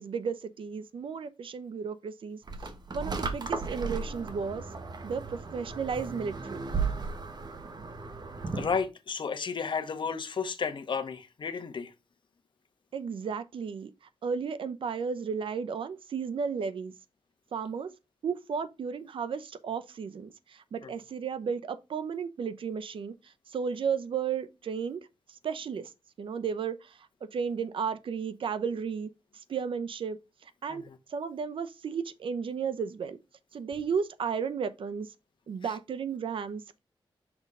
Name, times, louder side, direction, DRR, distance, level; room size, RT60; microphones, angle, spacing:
voice 1, 0.0-2.4 2.9-4.6 5.0-6.6 12.9-13.9 14.2-16.9 17.5-17.9 18.2-25.9 26.2-30.8 31.1-33.2 33.5-35.1 35.5-36.8, right 6 dB, 75° right, 0.6 m, -34 dB
sound 1, 2.5-8.8, right 4 dB, 50° right, 1.2 m, -35 dB
voice 2, 8.6-11.9 20.8-20.9 30.7-31.0 35.6-35.7, left 5 dB, 60° left, 1.0 m, -33 dB
6.1 x 3.7 x 5.3 m
wide cardioid pair, 95°, 9 cm